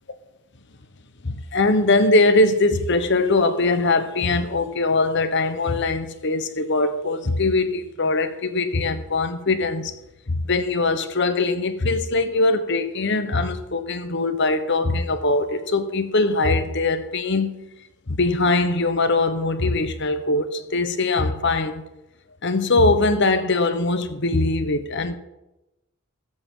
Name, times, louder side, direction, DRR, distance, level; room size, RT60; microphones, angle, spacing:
voice 1, 1.2-9.9 10.3-17.6 18.1-21.8 22.4-25.2, left 2 dB, 55° left, 1.1 m, -21 dB
21.5 x 7.8 x 3.9 m
head